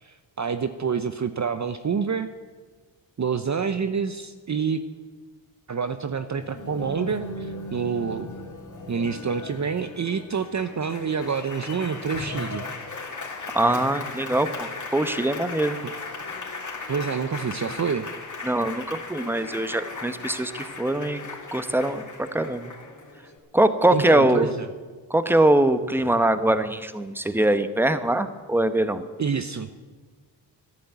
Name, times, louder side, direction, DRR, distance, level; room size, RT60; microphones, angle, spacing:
voice 1, 0.0-2.3 3.2-4.8 5.7-8.3 8.9-12.6 15.8-15.9 16.9-18.1 23.9-24.7 29.2-29.7, right 6 dB, 35° right, 10 dB, 0.8 m, -27 dB
Applause, 6.4-23.4, left 3 dB, 40° left, 3.2 m, -37 dB
voice 2, 13.5-15.8 18.4-21.2 21.5-22.0 22.3-22.7 23.5-24.5 25.1-29.0, right 1 dB, 5° right, 11 dB, 1.1 m, -22 dB
12.0 x 11.5 x 8.2 m, 1.4 s
supercardioid pair, 55°, 48 cm